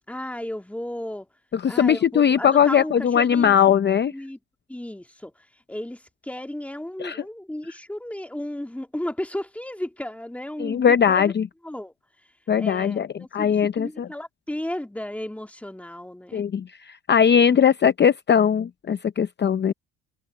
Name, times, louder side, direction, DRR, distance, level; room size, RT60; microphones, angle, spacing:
voice 1, 0.1-1.3 1.7-3.6 4.1-4.4 4.7-5.3 5.7-11.3 11.6-11.9 12.6-16.5 17.4-17.6, left 1 dB, 5° left, 1.9 m, -34 dB
voice 2, 1.5-4.1 7.0-7.2 10.6-11.5 12.5-14.1 16.3-19.7, left 8 dB, 35° left, 0.6 m, -20 dB
cardioid pair, 90°, 30 cm